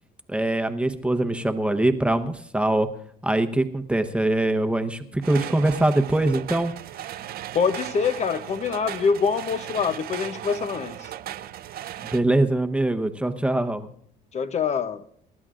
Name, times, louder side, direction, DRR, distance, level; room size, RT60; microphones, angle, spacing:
voice 1, 0.3-2.9 3.2-6.7 12.1-13.9, right 1 dB, 5° right, 1.0 m, -23 dB
sound 1, 5.2-12.2, right 12 dB, 65° right, 0.6 m, -37 dB
voice 2, 7.5-11.1 14.3-15.0, left 6 dB, 40° left, 0.7 m, -25 dB
28.0 x 12.5 x 2.5 m
cardioid pair, 110°, 17 cm